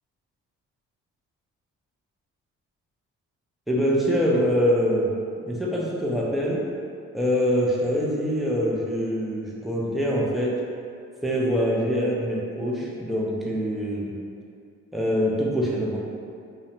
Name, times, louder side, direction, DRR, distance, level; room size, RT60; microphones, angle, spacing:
voice 1, 3.7-5.2 5.5-6.6 7.1-10.6 11.2-14.2 14.9-16.0, equal, ahead, -5 dB, 0.4 m, -24 dB
2.5 x 2.1 x 2.8 m, 2.4 s
cardioid pair, 90°, 30 cm